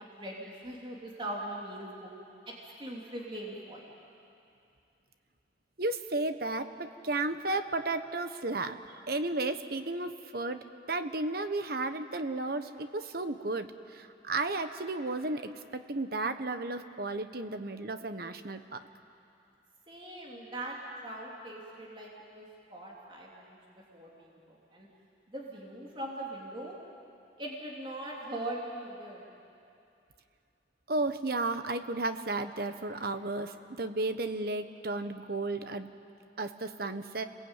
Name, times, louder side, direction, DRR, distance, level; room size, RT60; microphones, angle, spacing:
voice 1, 0.0-2.1 2.5-3.9 19.9-24.9 25.3-26.8 27.4-29.2, right 1 dB, 30° right, -3 dB, 3.1 m, -41 dB
voice 2, 5.8-8.8 9.1-18.8 30.9-35.9 36.4-37.2, right 2 dB, 55° right, 9 dB, 1.2 m, -33 dB
30.0 x 21.5 x 9.0 m, 2.6 s
head